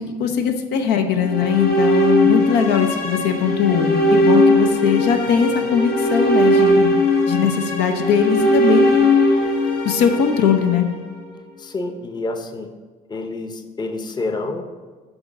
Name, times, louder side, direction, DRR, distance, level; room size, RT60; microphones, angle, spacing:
voice 1, 0.0-7.0 7.3-9.1 9.8-10.9, left 7 dB, 85° left, 6 dB, 0.8 m, -20 dB
sound 1, 1.1-11.3, left 1 dB, 65° left, 1.4 m, -18 dB
voice 2, 11.6-12.7 13.1-14.7, left 2 dB, 25° left, 7 dB, 0.7 m, -28 dB
6.3 x 5.0 x 6.1 m, 1.4 s
cardioid pair, 110°, 17 cm